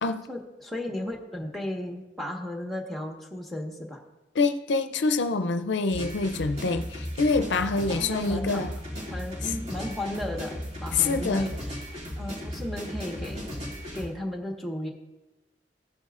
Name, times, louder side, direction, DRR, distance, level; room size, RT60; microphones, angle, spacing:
voice 1, 0.3-4.0 7.9-8.6 9.1-11.8 12.1-13.7 13.9-14.9, left 1 dB, ahead, 1.4 m, -35 dB
voice 2, 4.4-8.7 10.9-11.5, left 3 dB, 80° left, 0.5 m, -26 dB
sound 1, 5.9-14.1, equal, 35° right, 2.5 m, -36 dB
15.5 x 9.5 x 2.5 m
head